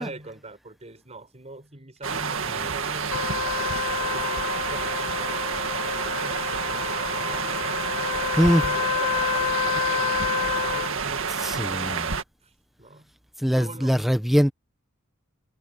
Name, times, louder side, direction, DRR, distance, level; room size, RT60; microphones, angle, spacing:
voice 1, 0.0-7.8 8.5-11.9 12.4-12.5 12.8-13.1 13.6-14.0, right 2 dB, 30° right, 5.5 m, -43 dB
sound 1, 2.0-12.2, right 5 dB, 65° right, 2.1 m, -29 dB
Trumpet, 3.1-10.9, left 8 dB, 70° left, 2.9 m, -29 dB
voice 2, 11.4-12.1 13.4-14.5, equal, ahead, 0.9 m, -22 dB
head